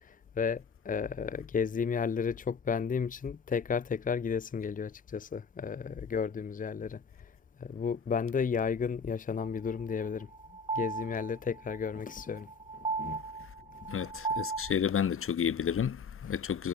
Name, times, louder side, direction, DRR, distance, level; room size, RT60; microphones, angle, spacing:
voice 1, 0.0-7.3 7.6-10.3 10.7-12.5 12.7-13.2 13.8-13.9, left 6 dB, 40° left, 0.7 m, -33 dB
sound 1, 9.4-14.7, right 4 dB, 25° right, 0.8 m, -36 dB
voice 2, 13.9-16.7, left 8 dB, 85° left, 2.1 m, -31 dB
wide cardioid pair, 155°, 21 cm